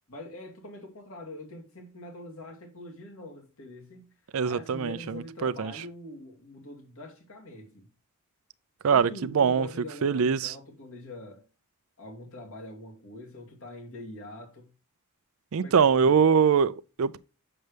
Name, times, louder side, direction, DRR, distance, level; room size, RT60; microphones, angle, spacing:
voice 1, 0.1-4.1 4.4-7.9 8.9-11.4 12.0-14.7 15.5-16.3, left 1 dB, 65° left, 2.5 m, -44 dB
voice 2, 4.3-5.8 8.8-9.7 10.0-10.5 15.5-17.2, right 6 dB, 65° right, 0.4 m, -23 dB
7.7 x 6.7 x 3.3 m
head